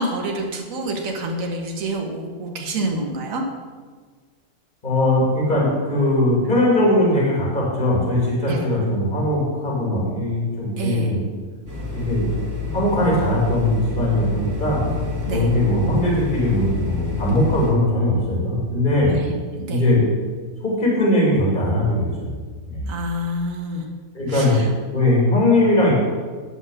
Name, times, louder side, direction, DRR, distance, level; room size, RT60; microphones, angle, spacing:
voice 1, 0.0-3.4 8.5-8.6 10.8-11.1 15.3-15.5 19.1-19.3 19.6-19.8 22.9-23.9 24.3-24.6, right 1 dB, 55° right, 1 dB, 1.6 m, -27 dB
voice 2, 4.8-11.2 11.9-12.2 12.7-14.9 15.3-19.2 19.7-20.0 20.6-22.3 22.6-22.8 24.1-24.6 24.9-25.9, left 1 dB, 25° left, -5 dB, 2.8 m, -20 dB
sound 1, 11.7-17.7, left 4 dB, 10° right, 2.5 m, -28 dB
9.6 x 5.4 x 7.1 m, 1.5 s
omnidirectional pair, 1.8 m